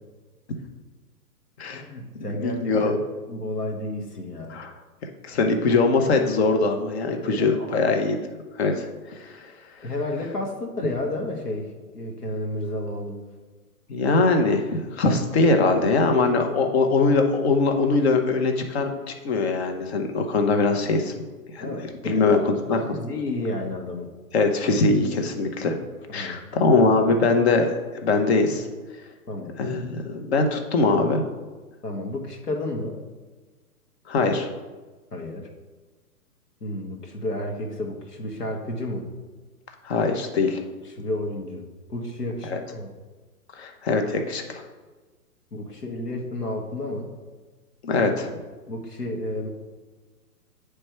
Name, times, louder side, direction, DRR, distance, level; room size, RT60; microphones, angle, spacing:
voice 1, 1.7-3.0 3.3-4.7 7.2-7.8 9.8-13.2 21.6-22.2 22.7-24.1 26.1-26.5 29.3-29.6 31.8-33.0 35.1-35.5 36.6-39.1 40.8-42.9 45.5-47.1 48.7-49.5, left 1 dB, 80° left, 2 dB, 1.5 m, -31 dB
voice 2, 2.3-2.9 4.5-4.7 5.3-8.2 8.6-9.5 13.9-21.1 21.5-21.7 22.0-22.8 24.3-25.8 26.1-28.7 29.6-31.2 34.1-34.5 39.8-40.6 42.5-42.6 43.6-44.6 47.8-48.3, left 3 dB, 45° left, 5 dB, 0.9 m, -22 dB
8.9 x 3.4 x 4.5 m, 1.3 s
figure-of-eight pair, 125°, 47 cm